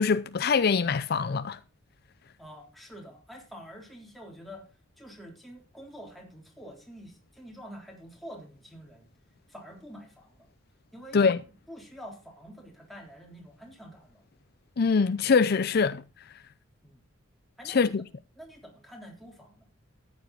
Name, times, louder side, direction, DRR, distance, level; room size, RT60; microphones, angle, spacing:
voice 1, 0.0-1.6 11.1-11.4 14.8-16.0 17.7-18.0, left 5 dB, 50° left, 0.5 m, -23 dB
voice 2, 2.4-4.7 5.0-9.1 9.5-10.5 10.9-14.2 16.8-17.0 17.6-17.9 18.4-19.7, equal, ahead, 3.4 m, -47 dB
13.5 x 9.6 x 3.9 m
head